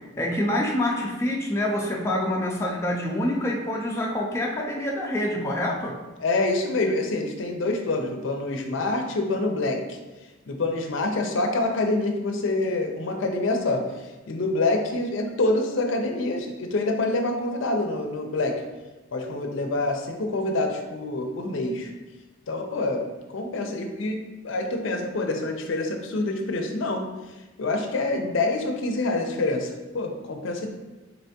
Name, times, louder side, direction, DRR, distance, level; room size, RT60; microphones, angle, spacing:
voice 1, 0.2-6.0, left 1 dB, 15° left, -1 dB, 0.3 m, -26 dB
voice 2, 6.2-10.0 10.5-18.6 19.1-21.9 22.5-23.0 23.3-27.1 27.6-30.7, left 2 dB, 70° left, 4 dB, 0.5 m, -26 dB
4.2 x 3.3 x 2.7 m, 1.2 s
head